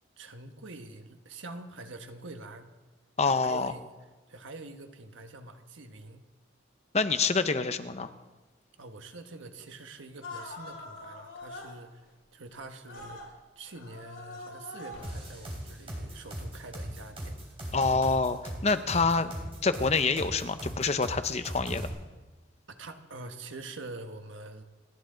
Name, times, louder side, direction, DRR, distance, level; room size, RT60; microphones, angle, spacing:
voice 1, 0.2-2.7 3.2-3.8 4.3-6.2 8.8-17.4 22.7-24.6, right 2 dB, 75° right, 6 dB, 1.3 m, -45 dB
voice 2, 3.2-3.7 6.9-8.1 17.7-19.3 19.6-21.8, left 4 dB, 35° left, 10 dB, 0.7 m, -26 dB
sound 1, 10.2-11.7 12.9-13.3 13.7-15.4 16.1-16.2, left 2 dB, 85° left, 3.9 m, -44 dB
sound 2, 15.0-21.9, equal, 30° right, 3.4 m, -38 dB
28.0 x 11.0 x 3.9 m, 1.2 s
head